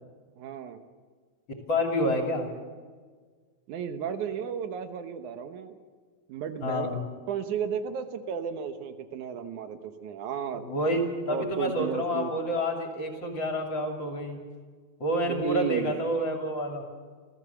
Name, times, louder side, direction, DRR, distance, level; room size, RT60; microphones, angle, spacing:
voice 1, 0.4-0.8 3.7-5.8 6.3-6.9 7.3-10.7 11.3-12.3 15.3-15.9, right 7 dB, 80° right, 8 dB, 2.6 m, -33 dB
voice 2, 1.7-2.5 6.6-7.0 10.5-14.4 15.0-16.8, equal, 40° left, 2 dB, 3.3 m, -28 dB
29.5 x 14.0 x 7.1 m, 1.6 s
omnidirectional pair, 3.4 m